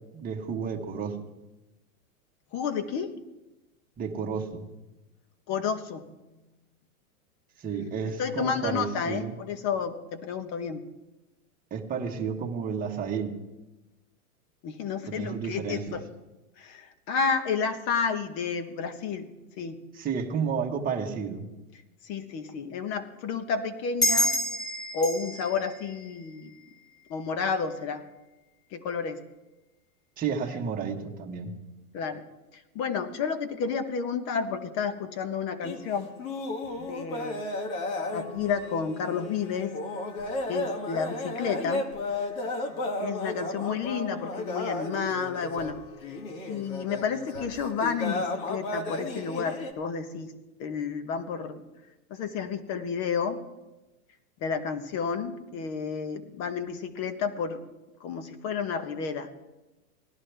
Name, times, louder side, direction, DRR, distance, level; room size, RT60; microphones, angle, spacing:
voice 1, 0.1-1.2 4.0-4.6 7.6-9.4 11.7-13.3 15.1-16.0 20.0-21.5 30.2-31.5, right 6 dB, 20° right, 1 dB, 1.4 m, -31 dB
voice 2, 2.5-3.1 5.5-6.1 8.2-10.8 14.6-16.0 16.6-19.3 19.6-19.8 22.0-24.3 24.9-26.5 27.1-28.0 28.7-29.2 31.9-32.2 32.5-36.1 36.8-37.4 38.1-39.8 40.5-41.9 43.0-45.8 46.5-50.3 50.6-51.6 52.1-53.4 54.4-57.6 58.0-59.3, left 6 dB, 35° left, 11 dB, 1.1 m, -31 dB
sound 1, 24.0-27.1, equal, 10° left, 1.3 m, -29 dB
sound 2, 35.6-49.7, left 2 dB, 60° left, 1.9 m, -34 dB
18.0 x 11.5 x 3.4 m, 1.0 s
hypercardioid pair, 130°, 45 cm